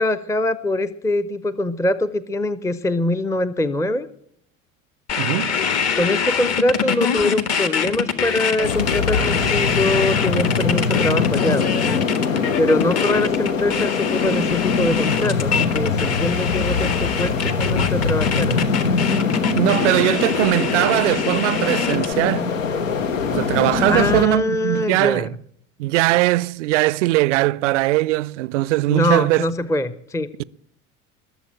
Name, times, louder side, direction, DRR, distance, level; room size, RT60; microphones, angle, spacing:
voice 1, 0.0-4.1 5.9-12.1 12.6-18.7 23.9-25.3 28.9-30.3, left 1 dB, 10° left, 0.6 m, -23 dB
sound 1, 5.1-22.1, left 7 dB, 40° left, 1.6 m, -25 dB
voice 2, 5.2-5.5 19.5-22.5 23.3-25.4 25.8-29.4, right 18 dB, 65° right, 0.5 m, -20 dB
sound 2, 8.6-24.2, left 5 dB, 80° left, 1.0 m, -22 dB
20.5 x 7.3 x 8.8 m
figure-of-eight pair, 65°, 39 cm